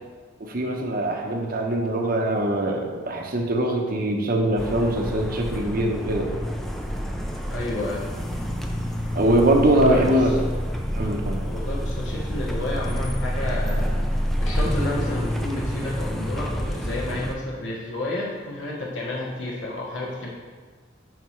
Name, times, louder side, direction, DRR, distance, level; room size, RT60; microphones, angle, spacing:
voice 1, 0.4-6.3 9.1-10.3 10.9-11.4, right 1 dB, 50° right, 2 dB, 0.9 m, -22 dB
sound 1, 4.6-17.3, equal, ahead, 0.5 m, -28 dB
voice 2, 7.5-8.0 9.7-10.2 11.5-20.3, left 2 dB, 70° left, -4 dB, 1.1 m, -31 dB
9.0 x 5.7 x 3.2 m, 1.5 s
head